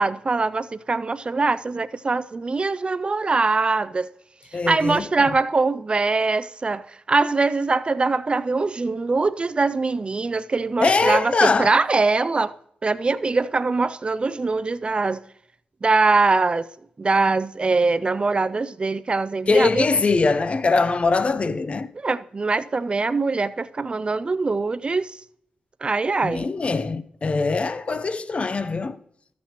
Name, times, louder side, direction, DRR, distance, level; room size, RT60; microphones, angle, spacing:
voice 1, 0.0-4.1 4.5-12.5 12.8-15.2 15.8-16.7 17.0-19.9 22.0-25.2 25.8-26.5, right 3 dB, 35° right, 0.4 m, -22 dB
voice 2, 4.5-5.3 10.8-11.8 19.5-21.9 26.2-29.0, left 4 dB, 45° left, 0.5 m, -22 dB
13.5 x 7.2 x 3.0 m
cardioid pair, 65°, 3 cm